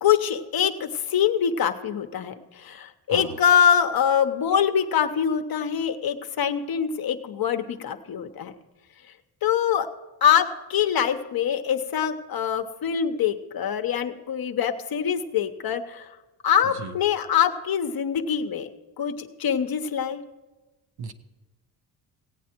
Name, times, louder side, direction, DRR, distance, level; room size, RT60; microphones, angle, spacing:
voice 1, 0.0-8.5 9.4-9.9 10.2-16.1 16.4-20.2, left 8 dB, 50° left, 8 dB, 0.9 m, -24 dB
voice 2, 3.1-3.3 16.8-16.9 21.0-21.1, right 5 dB, 50° right, 8 dB, 1.0 m, -35 dB
17.0 x 8.3 x 4.5 m, 1.1 s
supercardioid pair, 70°, 48 cm